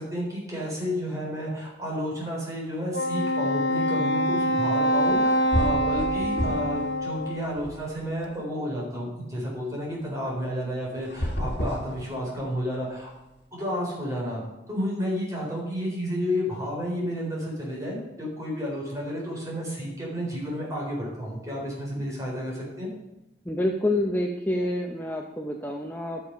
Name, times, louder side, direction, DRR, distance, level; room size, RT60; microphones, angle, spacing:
voice 1, 0.0-13.1 13.5-22.9, equal, 20° right, -4 dB, 4.1 m, -31 dB
Wind instrument woodwind instrument, 2.9-7.5, equal, 90° left, 1.0 m, -25 dB
sound 1, 5.1-5.2 5.5-6.8 7.2-8.3 11.0-12.6, equal, 70° left, 1.6 m, -30 dB
voice 2, 23.5-26.2, left 1 dB, 10° left, 2 dB, 0.7 m, -27 dB
12.0 x 6.7 x 5.7 m, 0.96 s
head